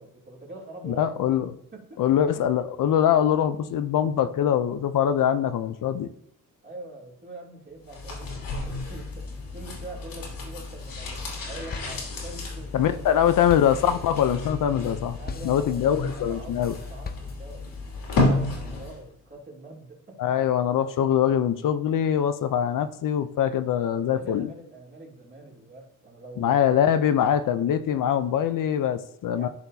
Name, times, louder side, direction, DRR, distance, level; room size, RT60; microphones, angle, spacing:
voice 1, 0.0-1.3 1.7-2.0 6.6-13.4 15.2-20.1 24.0-26.5 29.4-29.5, right 2 dB, 35° right, -3 dB, 2.8 m, -44 dB
voice 2, 0.8-1.5 2.0-6.1 12.7-15.2 15.4-16.7 20.2-24.5 26.4-29.5, left 9 dB, 70° left, 11 dB, 0.6 m, -23 dB
sound 1, 7.9-19.1 19.3-19.4, left 2 dB, 90° left, 2.6 m, -32 dB
sound 2, 10.8-11.4 11.7-17.8, left 4 dB, 30° left, 0.6 m, -43 dB
12.5 x 4.4 x 2.7 m, 0.73 s
cardioid pair, 110°, 34 cm